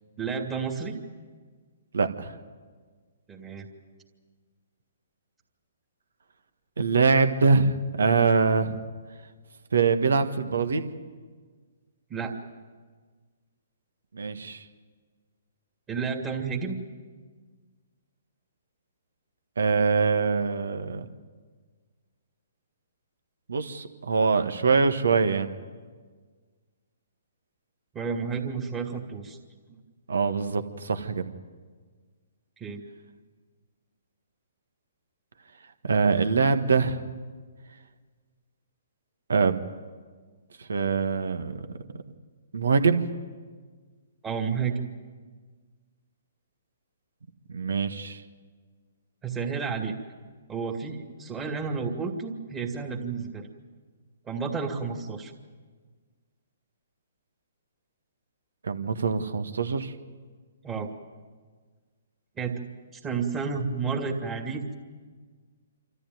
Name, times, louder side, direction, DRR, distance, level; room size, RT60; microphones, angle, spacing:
voice 1, 0.2-1.0 3.3-3.7 12.1-12.3 15.9-16.8 27.9-29.4 32.6-32.8 44.2-44.8 49.2-49.9 50.5-53.5 54.3-55.3 60.6-60.9 62.4-62.6 62.9-64.8, right 5 dB, 20° right, 0 dB, 2.3 m, -31 dB
voice 2, 1.9-2.4 6.8-8.8 9.7-10.9 14.1-14.6 19.6-21.1 23.5-25.5 30.1-31.3 35.8-37.0 39.3-39.5 40.6-41.8 42.5-43.0 47.5-48.2 58.6-59.9, right 4 dB, 75° right, 8 dB, 1.6 m, -24 dB
27.0 x 14.0 x 9.4 m, 1.5 s
hypercardioid pair, 135°, 0 cm